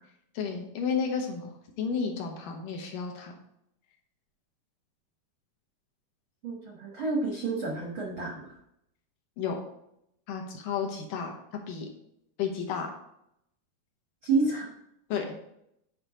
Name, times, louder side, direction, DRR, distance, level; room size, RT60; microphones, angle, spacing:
voice 1, 0.3-1.5 1.8-3.4 9.4-9.6 10.3-11.4 11.7-11.9 12.4-13.0 15.1-15.3, left 6 dB, 70° left, 2 dB, 2.4 m, -32 dB
voice 2, 6.4-8.6 14.2-14.7, right 3 dB, 70° right, -2 dB, 1.2 m, -29 dB
7.9 x 4.9 x 4.9 m, 0.77 s
omnidirectional pair, 4.4 m